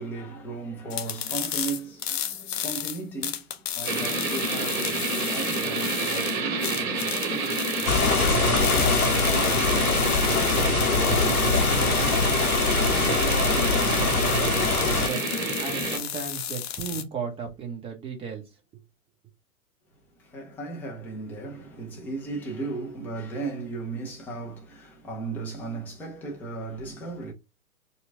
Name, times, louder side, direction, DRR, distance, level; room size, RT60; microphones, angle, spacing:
voice 1, 0.0-10.3 20.2-27.3, right 3 dB, 5° left, 0.4 m, -36 dB
sound 1, 0.9-17.0, left 9 dB, 45° left, 0.6 m, -33 dB
sound 2, 3.8-16.0, right 4 dB, 35° right, 1.9 m, -29 dB
sound 3, 7.9-15.1, left 3 dB, 85° left, 0.9 m, -23 dB
voice 2, 11.2-12.4 12.9-14.6 15.0-15.2 15.6-18.4 18.7-18.8, right 6 dB, 15° right, 0.9 m, -36 dB
4.4 x 2.3 x 2.6 m
figure-of-eight pair, 120°, 43 cm